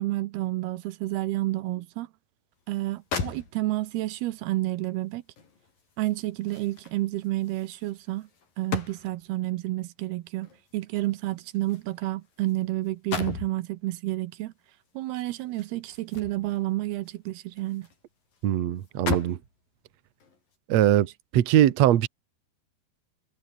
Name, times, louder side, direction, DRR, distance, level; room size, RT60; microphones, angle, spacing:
voice 1, 0.0-2.1 2.7-5.2 6.0-8.3 8.6-14.5 15.0-17.9, right 17 dB, 80° right, 2.7 m, -30 dB
sound 1, 2.7-2.8 3.1-4.0 5.4-9.3 10.4-12.6 12.8-13.6 15.1-16.6 17.1-18.0 18.3-18.4 18.8-19.5 20.2-20.4, left 5 dB, 55° left, 6.6 m, -37 dB
voice 2, 18.4-19.4 20.7-21.1 21.3-22.1, right 12 dB, 60° right, 1.8 m, -21 dB
omnidirectional pair, 4.8 m